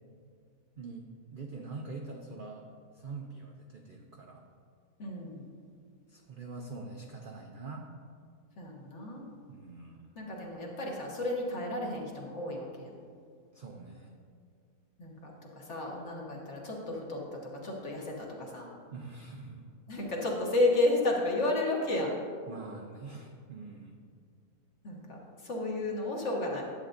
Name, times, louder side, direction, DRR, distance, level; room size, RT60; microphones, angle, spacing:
voice 1, 0.8-4.5 6.1-7.9 9.5-10.1 13.5-14.1 18.9-19.7 22.5-24.0, right 3 dB, 75° right, 1 dB, 0.4 m, -44 dB
voice 2, 5.0-5.4 8.6-9.2 10.1-12.9 15.0-17.2 17.6-18.7 19.9-22.1 24.8-25.2 25.4-26.6, left 2 dB, 50° left, -2 dB, 1.5 m, -32 dB
10.5 x 7.9 x 2.5 m, 2.2 s
omnidirectional pair, 1.6 m